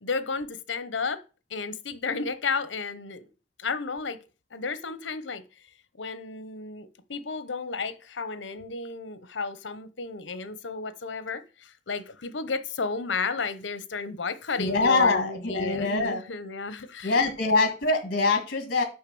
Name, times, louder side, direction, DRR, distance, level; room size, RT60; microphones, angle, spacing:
voice 1, 0.0-1.2 1.5-3.3 3.6-4.2 4.5-5.4 6.0-17.2, left 4 dB, 75° left, 0.9 m, -33 dB
voice 2, 14.6-16.2 17.0-18.8, left 3 dB, 55° left, 1.8 m, -24 dB
6.6 x 5.6 x 6.0 m
head